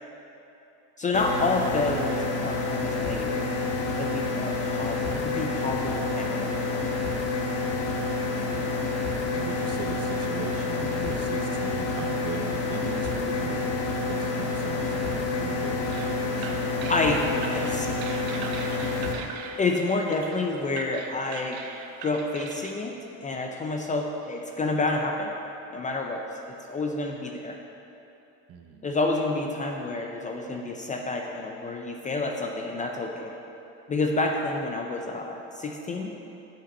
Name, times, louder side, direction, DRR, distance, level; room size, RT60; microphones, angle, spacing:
voice 1, 1.0-3.5 4.0-6.8 16.9-17.2 17.5-17.9 19.6-21.6 22.0-22.9 23.2-25.3 25.7-27.6 28.8-33.3 33.9-36.1, left 2 dB, 20° left, 2 dB, 0.4 m, -29 dB
sound 1, 1.1-19.1, left 3 dB, 40° left, 1.1 m, -28 dB
voice 2, 8.4-8.7 9.3-13.7 14.1-18.6 28.5-28.9, right 6 dB, 40° right, 4 dB, 0.8 m, -40 dB
sound 2, 15.8-22.7, right 6 dB, 90° right, 0.8 m, -41 dB
8.8 x 5.6 x 5.3 m, 2.9 s
cardioid pair, 135°, 36 cm